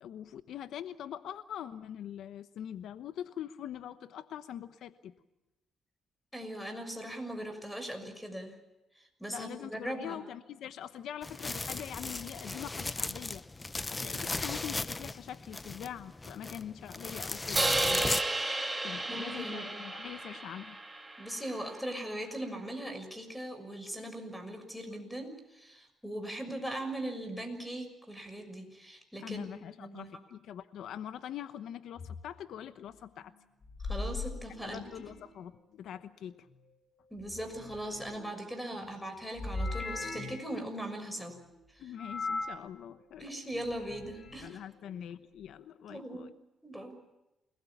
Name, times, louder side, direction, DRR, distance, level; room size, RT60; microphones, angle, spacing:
voice 1, 0.0-5.1 9.3-13.4 13.9-18.1 18.8-20.8 29.2-33.3 34.6-36.5 38.8-38.9 41.8-43.3 44.4-46.3, left 10 dB, 75° left, 11 dB, 1.0 m, -43 dB
voice 2, 6.3-8.5 8.9-10.2 19.1-19.7 21.2-29.5 29.8-30.2 33.8-35.1 37.1-41.4 41.7-41.8 43.2-44.6 45.9-46.3 46.6-47.0, right 1 dB, 5° left, 8 dB, 6.5 m, -40 dB
sound 1, 11.2-18.2, left 2 dB, 20° left, 0.9 m, -37 dB
Crash cymbal, 17.6-21.7, right 2 dB, 15° right, 2.7 m, -33 dB
sound 2, 32.0-32.2 33.6-35.3 37.2-38.3 39.4-40.5 42.0-42.6 43.6-44.4, left 2 dB, 50° left, 5.3 m, -39 dB
29.0 x 20.0 x 7.3 m, 0.95 s
cardioid pair, 90°, 0 cm